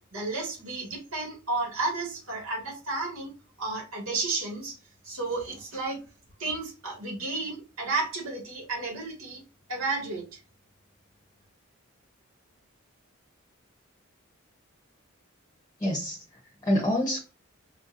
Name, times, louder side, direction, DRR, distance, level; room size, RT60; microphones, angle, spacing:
voice 1, 0.1-3.3 3.6-4.7 5.0-6.0 6.4-9.4 9.7-10.4, right 3 dB, 90° right, -2 dB, 2.0 m, -32 dB
voice 2, 15.8-17.2, equal, 20° left, -1 dB, 0.7 m, -27 dB
4.2 x 2.7 x 2.6 m, 0.31 s
head